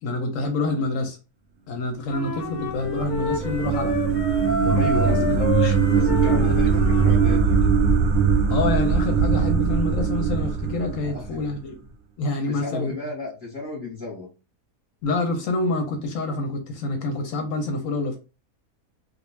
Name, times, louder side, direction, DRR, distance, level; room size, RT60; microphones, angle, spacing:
voice 1, 0.0-1.2 1.7-4.0 4.6-5.7 6.2-6.5 8.5-11.7 12.2-12.9 15.0-18.2, left 2 dB, 70° left, 5 dB, 0.9 m, -27 dB
Wind instrument woodwind instrument, 2.1-7.5, left 2 dB, 55° left, 0.5 m, -29 dB
sound 1, 2.3-11.6, right 5 dB, 70° right, 0.7 m, -21 dB
voice 2, 4.7-5.5 5.9-7.7 11.0-11.3 12.5-14.3, left 2 dB, 20° left, -5 dB, 0.7 m, -34 dB
2.4 x 2.3 x 3.1 m, 0.31 s
omnidirectional pair, 1.6 m